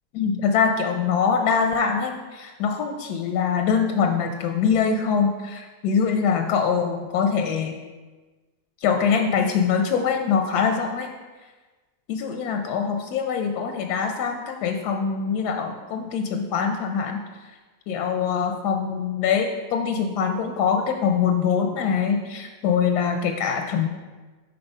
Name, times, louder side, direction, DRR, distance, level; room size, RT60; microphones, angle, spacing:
voice 1, 0.1-7.7 8.8-11.1 12.1-17.2 17.9-23.9, left 6 dB, 90° left, 4 dB, 1.2 m, -23 dB
5.5 x 4.2 x 5.4 m, 1.3 s
omnidirectional pair, 1.7 m